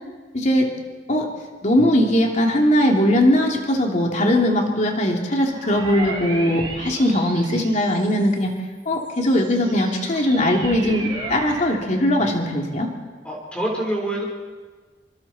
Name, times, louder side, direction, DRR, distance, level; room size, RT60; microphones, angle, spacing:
voice 1, 0.3-0.7 1.1-1.3 1.6-8.5 8.8-12.9, left 1 dB, 40° left, 1 dB, 3.1 m, -20 dB
sound 1, 5.5-8.4 9.0-11.9, right 3 dB, 25° right, 3.6 m, -34 dB
voice 2, 13.2-14.3, right 1 dB, 5° left, -1 dB, 4.2 m, -26 dB
26.0 x 25.0 x 4.4 m, 1.4 s
head